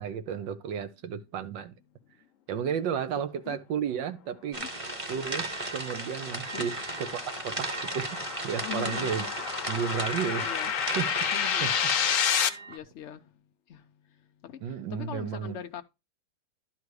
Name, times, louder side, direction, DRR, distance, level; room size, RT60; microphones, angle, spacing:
voice 1, 0.0-1.7 2.5-4.6 5.1-7.1 7.4-8.2 8.4-9.3 9.7-11.1 11.6-11.7 14.6-15.6, right 7 dB, 90° right, 1.6 m, -33 dB
sound 1, 4.5-12.1, right 2 dB, 25° right, 0.9 m, -36 dB
sound 2, 5.2-6.1 6.4-7.3 7.6-8.5 8.8-12.8, right 4 dB, 65° right, 0.5 m, -44 dB
sound 3, 5.6-12.5, left 8 dB, 60° left, 1.0 m, -30 dB
voice 2, 8.6-9.1 10.4-10.7 11.3-11.7 12.7-13.2 13.7-13.8 14.4-14.6 14.9-15.8, left 9 dB, 90° left, 0.6 m, -40 dB
12.0 x 4.0 x 4.7 m
omnidirectional pair, 1.9 m